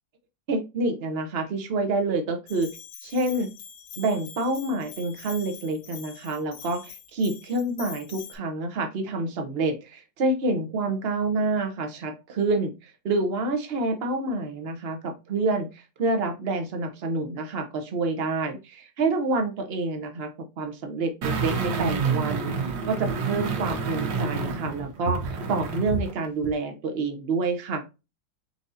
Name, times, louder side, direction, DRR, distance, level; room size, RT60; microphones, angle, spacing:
voice 1, 0.5-2.7 3.0-3.5 4.0-27.8, right 3 dB, 50° right, 5 dB, 0.7 m, -28 dB
Bell, 2.5-8.4, left 8 dB, 70° left, 1.5 m, -44 dB
sound 1, 21.2-26.1 26.4-26.5, right 5 dB, 75° right, 1.7 m, -28 dB
4.6 x 4.0 x 2.5 m, 0.26 s
omnidirectional pair, 2.0 m